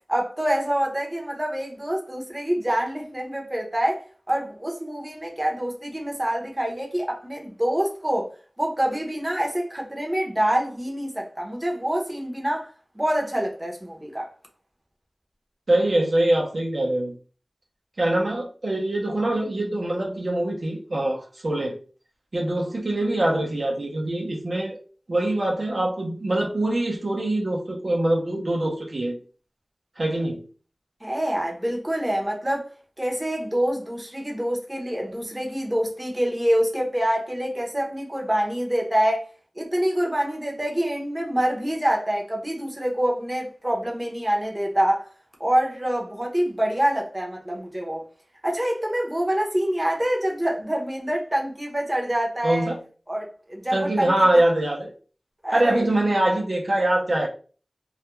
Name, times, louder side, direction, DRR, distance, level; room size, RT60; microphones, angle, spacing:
voice 1, 0.1-8.3 8.6-12.7 12.9-14.3 31.0-32.7 33.0-39.3 39.6-45.1 45.4-48.1 48.4-52.7 53.1-54.1 55.4-55.9, equal, 25° right, 0.7 m, -26 dB
voice 2, 15.7-17.1 18.0-21.7 22.3-24.8 25.1-29.2 30.0-30.4 52.4-52.8 53.7-54.9 55.5-57.3, right 1 dB, 70° right, 0.6 m, -23 dB
2.3 x 2.2 x 2.9 m
wide cardioid pair, 60°, 0 cm